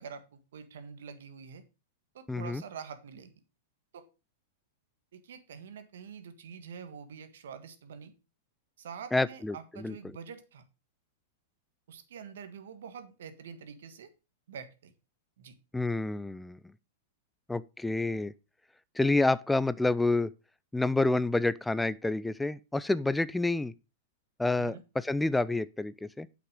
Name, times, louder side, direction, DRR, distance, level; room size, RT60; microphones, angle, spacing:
voice 1, 0.0-1.6 2.1-3.3 3.9-4.1 5.1-8.1 8.8-10.6 11.9-14.1 14.5-14.9 15.4-15.5 24.6-24.8, right 6 dB, 80° right, 1.6 m, -46 dB
voice 2, 2.3-2.6 9.1-10.1 15.7-16.6 17.5-18.3 19.0-20.3 20.7-23.7 24.4-26.3, left 2 dB, 5° left, 0.4 m, -28 dB
8.2 x 6.0 x 5.0 m
hypercardioid pair, 125°, 0 cm